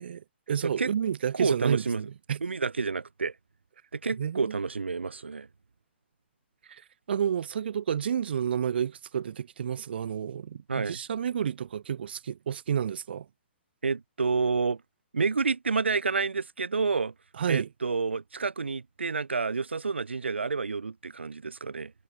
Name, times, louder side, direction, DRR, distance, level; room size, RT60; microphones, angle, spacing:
voice 1, 0.0-2.4 4.2-4.6 6.7-6.8 7.1-13.3 17.4-17.7, right 8 dB, 65° right, 2.1 m, -30 dB
voice 2, 0.6-0.9 1.3-2.1 2.4-3.3 3.9-5.5 10.7-11.0 13.8-14.8 15.1-17.1 17.5-21.9, right 4 dB, 85° right, 1.3 m, -29 dB
hypercardioid pair, 125°, 6 cm